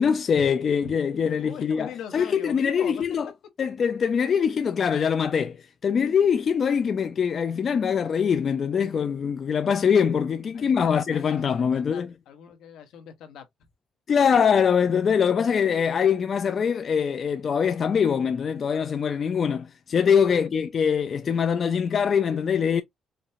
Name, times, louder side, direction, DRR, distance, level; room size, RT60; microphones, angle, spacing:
voice 1, 0.0-3.3 3.6-5.6 5.8-12.1 14.1-22.8, left 7 dB, 50° left, 0.5 m, -23 dB
voice 2, 1.2-3.1 10.5-13.5 20.3-20.5, left 8 dB, 85° left, 1.3 m, -41 dB
5.1 x 2.2 x 2.8 m
cardioid pair, 90°, 0 cm